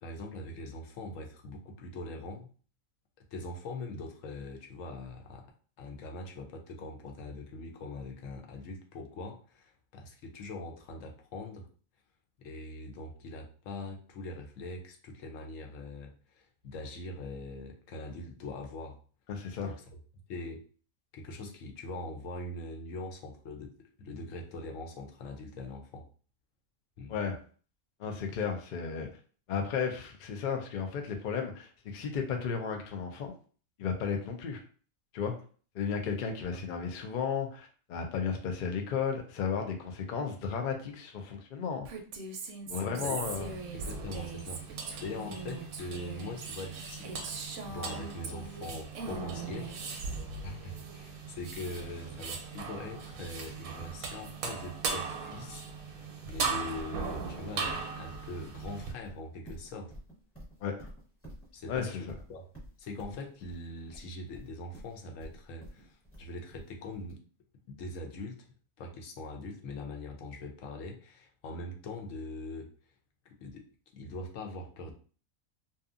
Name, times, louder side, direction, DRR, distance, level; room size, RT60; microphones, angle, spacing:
voice 1, 0.0-2.5 3.3-5.5 5.8-11.7 12.4-19.0 19.6-19.8 20.3-20.6 21.1-23.7 24.0-26.0 27.0-27.2 36.5-36.6 42.7-43.3 43.7-47.3 47.7-49.7 50.4-55.6 56.3-59.9 61.5-62.5 62.8-67.2 67.7-68.5 68.8-72.7 73.3-73.6 73.9-74.9, left 2 dB, 70° left, 2 dB, 1.0 m, -42 dB
voice 2, 19.3-19.7 27.1-27.4 28.0-29.1 29.5-33.3 33.8-34.6 35.1-35.3 35.7-41.9 42.7-43.5 60.6-60.7 61.7-62.1, left 6 dB, 90° left, 4 dB, 0.4 m, -34 dB
Female speech woman speaking, 41.8-48.7 48.9-50.2, right 4 dB, 65° right, 0.8 m, -41 dB
sound 1, 43.2-58.9, right 5 dB, 90° right, 1.0 m, -39 dB
Livestock farm animals working animals, 56.3-67.1, equal, 10° left, 0.9 m, -50 dB
2.7 x 2.3 x 2.4 m, 0.41 s
omnidirectional pair, 1.5 m